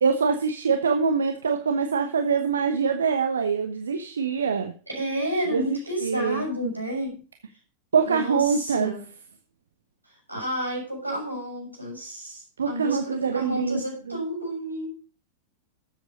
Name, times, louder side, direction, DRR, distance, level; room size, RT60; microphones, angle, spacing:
voice 1, 0.0-4.7 5.5-6.5 7.9-8.9 12.6-14.2, right 5 dB, 70° right, 6 dB, 1.1 m, -24 dB
voice 2, 4.9-7.2 8.0-9.0 10.3-14.9, equal, 85° right, 0 dB, 6.8 m, -31 dB
13.0 x 8.0 x 5.2 m, 0.37 s
figure-of-eight pair, 90°, 0 cm